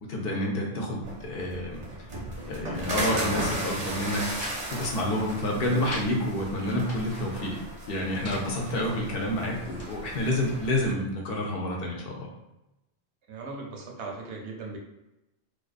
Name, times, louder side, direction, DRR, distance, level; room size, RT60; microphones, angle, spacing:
voice 1, 0.1-1.8 2.5-7.6 7.9-12.3, left 1 dB, 65° left, -1 dB, 0.7 m, -29 dB
sound 1, 1.0-10.9, right 1 dB, 45° right, 0.5 m, -36 dB
sound 2, 3.2-3.6 3.9-4.6 4.9-5.0 5.3-6.1 6.6-7.2 7.9-8.5 9.1-9.9, left 1 dB, 15° left, 0.6 m, -43 dB
voice 2, 13.3-14.8, right 3 dB, 90° right, 0 dB, 0.9 m, -38 dB
2.3 x 2.2 x 2.4 m, 0.93 s
omnidirectional pair, 1.1 m